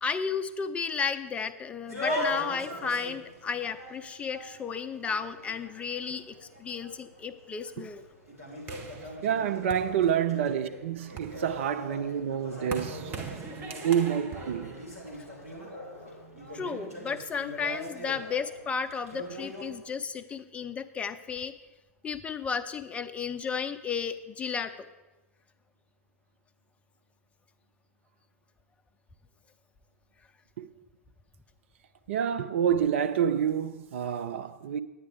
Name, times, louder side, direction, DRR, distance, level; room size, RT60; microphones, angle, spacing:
voice 1, 0.0-8.0 13.7-13.8 16.5-21.5 22.0-24.9, left 6 dB, 15° left, 0.5 m, -33 dB
sound 1, 1.9-19.7, equal, 80° right, 2.8 m, -41 dB
sound 2, 8.7-10.5 11.0-15.6, right 5 dB, 25° right, 1.1 m, -42 dB
voice 2, 9.2-13.1 13.8-14.8 30.6-30.7 32.1-34.8, right 8 dB, 55° right, 0.5 m, -28 dB
9.5 x 9.5 x 4.6 m
figure-of-eight pair, 100°, 8 cm